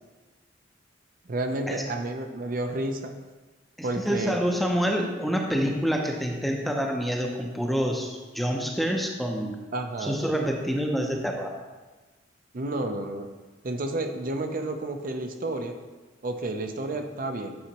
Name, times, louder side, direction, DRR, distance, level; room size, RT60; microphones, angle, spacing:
voice 1, 1.3-3.2 3.8-4.4 9.7-10.2 12.5-13.3 13.6-15.8 16.2-17.6, right 2 dB, 50° right, 5 dB, 0.5 m, -31 dB
voice 2, 3.8-9.6 10.0-11.5, equal, ahead, 1 dB, 0.6 m, -27 dB
8.6 x 4.4 x 2.9 m, 1.2 s
head